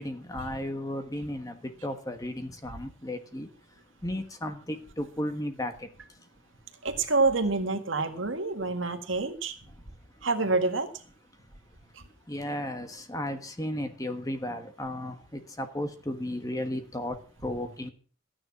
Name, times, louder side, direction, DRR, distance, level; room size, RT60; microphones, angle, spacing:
voice 1, 0.0-3.5 4.0-5.7 12.3-17.2 17.4-17.9, left 1 dB, 20° left, 7 dB, 1.4 m, -34 dB
voice 2, 6.8-9.6 10.2-10.9 11.9-12.0, right 3 dB, 75° right, 6 dB, 1.9 m, -27 dB
14.0 x 9.8 x 6.0 m, 0.40 s
head